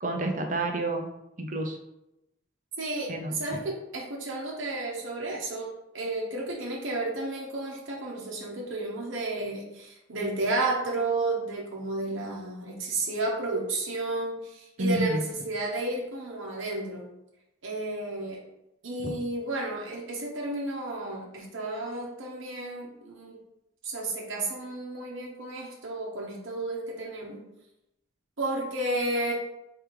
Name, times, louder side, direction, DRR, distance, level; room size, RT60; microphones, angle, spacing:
voice 1, 0.0-1.1 1.4-1.8 3.1-3.4 14.8-15.2, right 2 dB, 40° right, 3 dB, 0.6 m, -29 dB
voice 2, 2.8-17.1 17.6-18.4 18.8-23.4 23.8-27.4 28.4-29.3, right 2 dB, 75° right, -3 dB, 1.0 m, -32 dB
3.5 x 3.4 x 4.6 m, 0.89 s
head